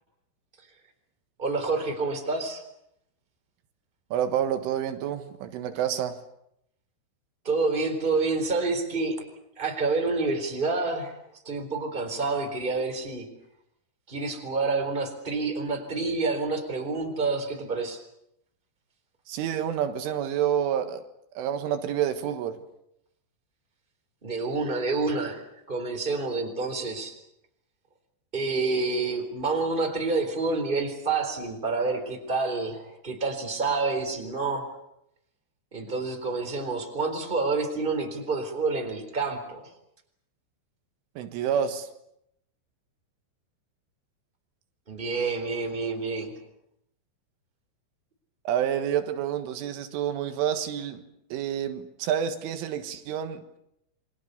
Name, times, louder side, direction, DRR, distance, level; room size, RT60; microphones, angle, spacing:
voice 1, 1.4-2.6 7.4-9.2 9.6-11.1 11.4-13.3 14.1-18.0 24.2-25.4 25.7-27.1 28.3-34.7 35.7-39.7 44.9-46.3, right 3 dB, 10° right, 3.5 m, -28 dB
voice 2, 4.1-6.2 19.3-21.0 21.4-22.6 41.2-41.9 48.5-51.0 51.3-53.4, right 9 dB, 85° right, 4.0 m, -28 dB
29.0 x 23.5 x 7.0 m
omnidirectional pair, 5.6 m